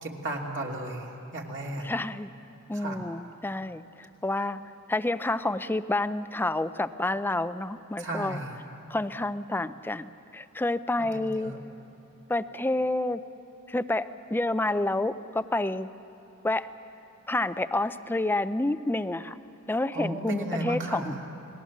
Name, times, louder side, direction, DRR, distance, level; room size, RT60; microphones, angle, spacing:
voice 1, 0.0-1.9 2.7-3.0 8.0-8.5 11.2-11.6 19.9-21.2, right 2 dB, 60° right, -1 dB, 2.9 m, -34 dB
voice 2, 1.8-2.3 2.7-4.6 4.9-8.4 8.9-11.5 12.3-13.2 13.7-15.9 16.4-16.7 17.3-19.4 19.7-21.2, left 2 dB, 10° left, 13 dB, 0.5 m, -29 dB
29.0 x 19.5 x 7.3 m, 2.9 s
head